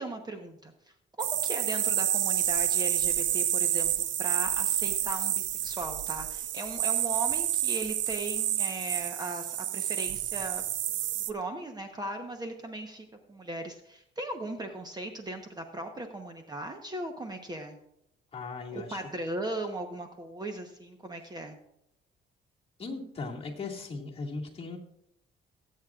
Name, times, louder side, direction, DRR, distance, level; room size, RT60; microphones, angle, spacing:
voice 1, 0.0-10.6 11.3-17.8 18.7-21.6, right 1 dB, 20° right, 5 dB, 1.0 m, -38 dB
sound 1, 1.2-11.3, right 12 dB, 65° right, 0.6 m, -29 dB
voice 2, 18.3-19.0 22.8-24.8, left 3 dB, 30° left, -2 dB, 2.1 m, -38 dB
21.5 x 8.4 x 2.4 m, 0.80 s
cardioid pair, 140°, 21 cm